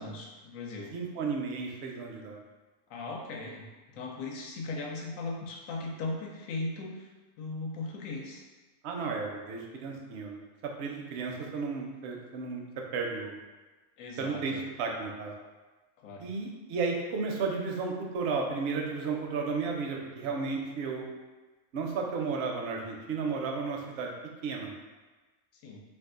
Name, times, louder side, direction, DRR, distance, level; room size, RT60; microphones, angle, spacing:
voice 1, 0.0-0.9 2.9-3.7 3.9-7.1 7.4-8.4 14.0-14.6 16.0-16.3 25.6-25.8, left 3 dB, 75° left, 0 dB, 1.0 m, -38 dB
voice 2, 0.9-2.4 8.8-13.4 14.2-15.3 16.2-21.1 21.7-24.1 24.4-24.7, right 4 dB, 65° right, 0 dB, 0.7 m, -33 dB
2.6 x 2.4 x 3.6 m, 1.2 s
omnidirectional pair, 1.4 m